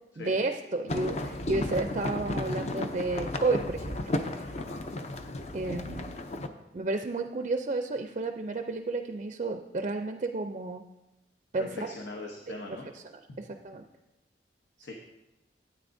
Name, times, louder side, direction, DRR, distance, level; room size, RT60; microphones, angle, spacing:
voice 1, 0.2-4.1 4.4-4.5 5.5-6.1 6.7-10.8 11.5-11.9 13.0-13.8, right 3 dB, 40° right, 6 dB, 0.4 m, -32 dB
sound 1, 0.9-6.5, left 2 dB, 40° left, 0.5 m, -34 dB
voice 2, 11.6-12.9 13.3-13.4 14.8-14.9, left 2 dB, 80° left, 0 dB, 1.0 m, -41 dB
13.0 x 8.8 x 2.6 m, 0.97 s
head